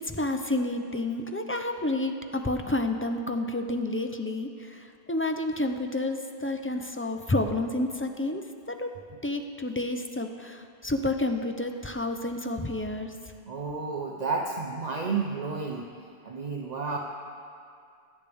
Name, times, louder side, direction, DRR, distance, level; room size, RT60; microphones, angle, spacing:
voice 1, 0.0-4.8 5.1-8.4 8.7-8.9 9.2-13.1, left 2 dB, 20° left, 5 dB, 0.4 m, -30 dB
voice 2, 13.4-15.9 16.2-17.0, right 4 dB, 45° right, 0 dB, 0.8 m, -31 dB
20.0 x 9.8 x 3.5 m, 2.3 s
omnidirectional pair, 1.1 m